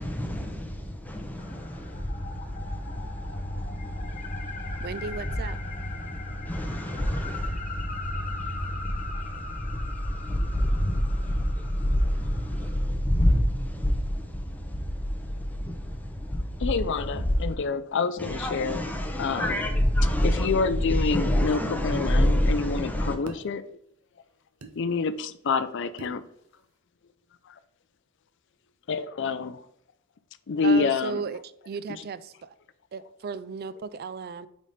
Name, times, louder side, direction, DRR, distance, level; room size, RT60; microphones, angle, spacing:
voice 1, 0.0-17.6 18.2-23.2, equal, 5° left, 0.7 m, -28 dB
sound 1, 1.4-12.8, left 4 dB, 35° left, 0.8 m, -41 dB
voice 2, 4.8-5.6 30.6-31.4 31.7-32.5 32.9-34.5, right 5 dB, 45° right, 0.3 m, -35 dB
voice 3, 16.6-18.8 19.2-19.6 20.2-23.6 24.8-26.2 27.4-27.6 28.9-29.7 30.5-31.2 31.9-32.1, left 4 dB, 55° left, 0.4 m, -27 dB
sound 2, 21.9-22.1 23.3-23.5 24.6-24.7 26.0-26.2, right 2 dB, 75° right, 0.8 m, -41 dB
5.1 x 4.1 x 5.0 m
head